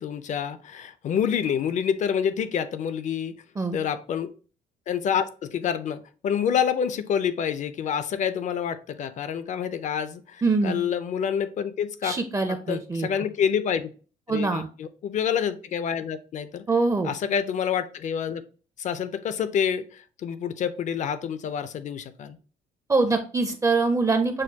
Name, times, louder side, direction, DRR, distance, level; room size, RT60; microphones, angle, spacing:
voice 1, 0.0-3.3 3.7-4.3 4.9-12.2 12.5-13.9 14.3-16.7 17.0-18.4 18.8-22.4, left 8 dB, 45° left, 12 dB, 0.5 m, -27 dB
voice 2, 10.4-10.8 12.0-13.1 14.3-14.7 16.7-17.1 22.9-24.4, right 3 dB, 20° right, 7 dB, 0.5 m, -24 dB
6.4 x 2.2 x 2.7 m, 0.38 s
cardioid pair, 110°, 17 cm